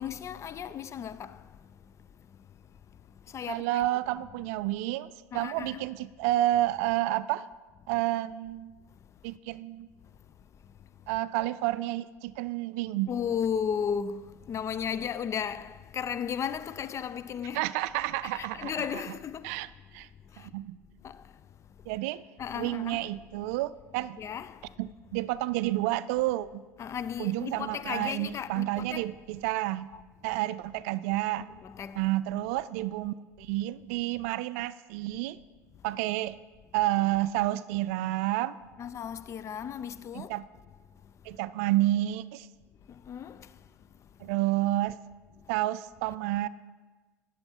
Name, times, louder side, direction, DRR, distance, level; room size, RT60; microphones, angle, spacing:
voice 1, 0.0-1.5 3.3-3.8 5.3-5.8 13.1-17.7 18.2-19.6 20.3-20.5 21.0-21.2 22.4-23.1 24.2-24.7 26.8-29.1 29.9-30.0 31.4-32.0 38.8-40.4 42.9-43.5, left 8 dB, 35° left, 0.4 m, -35 dB
voice 2, 3.5-7.4 7.9-8.7 9.2-9.9 11.1-13.1 17.5-19.0 19.4-19.7 19.9-20.1 20.4-20.8 21.9-22.2 22.5-24.2 24.8-26.6 27.2-29.9 30.2-31.5 32.0-35.4 35.8-36.4 36.7-38.6 40.1-40.5 41.3-42.5 44.2-45.0 45.5-46.5, right 16 dB, 65° right, 0.3 m, -30 dB
10.5 x 7.0 x 4.4 m
hypercardioid pair, 75°, 9 cm